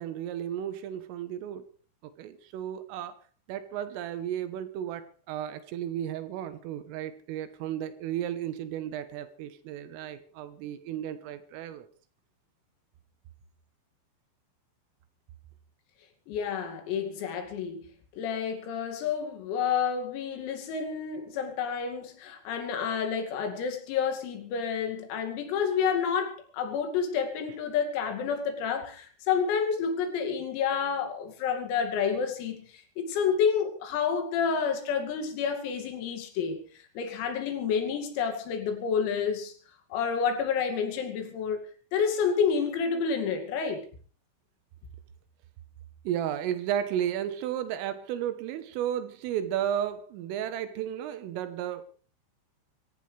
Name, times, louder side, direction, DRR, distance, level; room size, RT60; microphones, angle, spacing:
voice 1, 0.0-1.6 2.2-3.1 3.5-11.9 46.1-51.8, right 10 dB, 80° right, 11 dB, 3.7 m, -33 dB
voice 2, 16.3-17.9 18.2-36.6 37.0-39.5 39.9-41.6 41.9-43.9, left 6 dB, 85° left, 5 dB, 5.2 m, -29 dB
25.5 x 14.5 x 3.4 m, 0.40 s
omnidirectional pair, 6.0 m